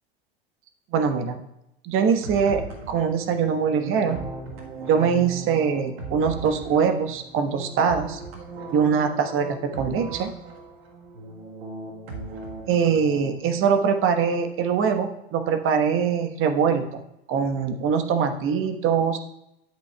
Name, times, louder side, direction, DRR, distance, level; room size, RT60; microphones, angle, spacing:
voice 1, 0.9-1.4 1.8-4.2 4.9-8.2 8.7-10.3 12.7-17.0 17.3-19.2, right 6 dB, 45° right, 7 dB, 1.2 m, -23 dB
sound 1, 2.0-13.8, right 3 dB, 75° right, 1.4 m, -38 dB
10.5 x 8.2 x 2.3 m, 0.84 s
hypercardioid pair, 85°, 30 cm